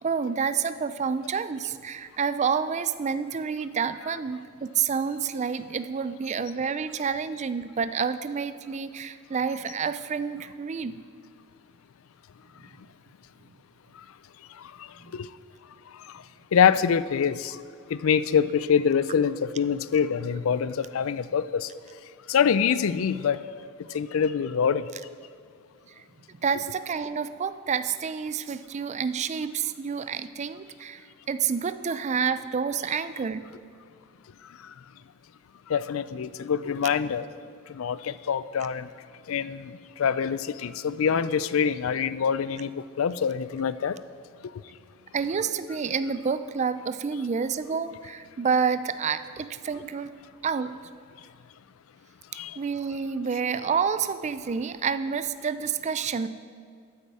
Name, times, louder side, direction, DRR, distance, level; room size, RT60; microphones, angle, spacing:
voice 1, 0.0-11.0 26.4-33.4 45.1-50.1 50.4-50.7 52.3-56.3, right 6 dB, 35° right, 13 dB, 0.4 m, -29 dB
voice 2, 16.5-17.6 17.9-21.7 22.3-23.4 23.9-24.8 35.7-37.3 37.7-38.9 39.3-44.0 52.3-52.6, left 7 dB, 70° left, 15 dB, 0.4 m, -25 dB
13.0 x 8.4 x 4.8 m, 2.2 s
head